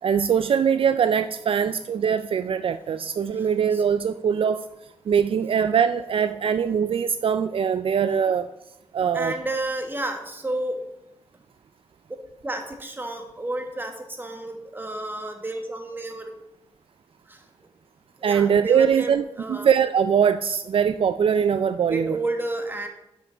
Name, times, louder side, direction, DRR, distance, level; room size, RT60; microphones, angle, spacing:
voice 1, 0.0-4.6 5.1-8.5 8.9-9.3 18.2-22.2, right 7 dB, 60° right, 11 dB, 0.4 m, -22 dB
voice 2, 3.4-3.8 9.1-10.8 12.4-16.3 17.3-17.4 18.2-19.7 21.9-22.9, right 2 dB, 20° right, 4 dB, 1.6 m, -31 dB
11.5 x 5.7 x 5.0 m, 0.90 s
wide cardioid pair, 100°, 10 cm